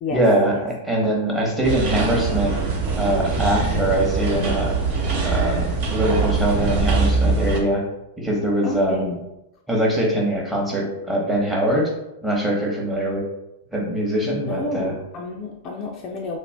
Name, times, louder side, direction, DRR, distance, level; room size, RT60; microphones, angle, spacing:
voice 1, 0.1-2.5 3.0-4.7 5.2-5.6 5.9-7.8 8.2-9.2 9.7-11.9 12.2-13.2 13.7-14.9, right 1 dB, 5° right, -3 dB, 0.9 m, -22 dB
Creaky Lake Cabin, 1.6-7.6, right 4 dB, 50° right, 0.8 m, -22 dB
voice 2, 8.6-9.1 14.5-16.4, left 3 dB, 35° left, 0 dB, 0.4 m, -30 dB
2.4 x 2.1 x 3.3 m, 0.91 s
hypercardioid pair, 105°, 0 cm